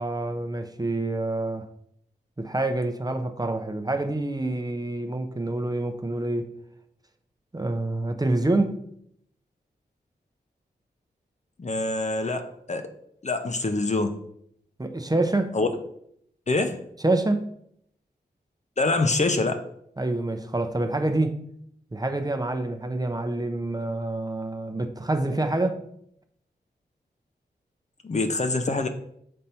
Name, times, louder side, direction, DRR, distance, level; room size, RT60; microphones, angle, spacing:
voice 1, 0.0-1.6 2.4-6.5 7.5-8.8 14.8-15.6 17.0-17.5 20.0-21.4 21.9-25.8, right 2 dB, 20° right, 6 dB, 0.7 m, -27 dB
voice 2, 11.6-12.9 13.2-14.2 15.5-15.7 16.5-16.8 18.8-19.6 28.0-28.9, left 2 dB, 40° left, 7 dB, 0.7 m, -25 dB
5.4 x 4.1 x 4.3 m, 0.70 s
cardioid pair, 45°, 17 cm